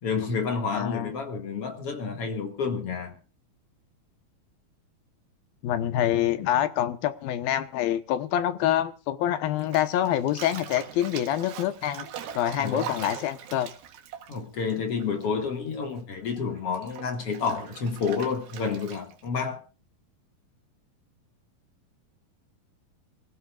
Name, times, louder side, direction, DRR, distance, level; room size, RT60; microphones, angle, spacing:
voice 1, 0.0-3.2 12.6-12.9 14.3-19.6, left 5 dB, 45° left, 2.6 m, -30 dB
voice 2, 0.7-1.1 5.6-12.1 12.4-13.7, left 11 dB, 75° left, 2.9 m, -26 dB
Bathtub (filling or washing), 9.6-15.4 15.7-19.3, right 8 dB, 80° right, 3.4 m, -41 dB
26.0 x 15.5 x 2.5 m
omnidirectional pair, 4.3 m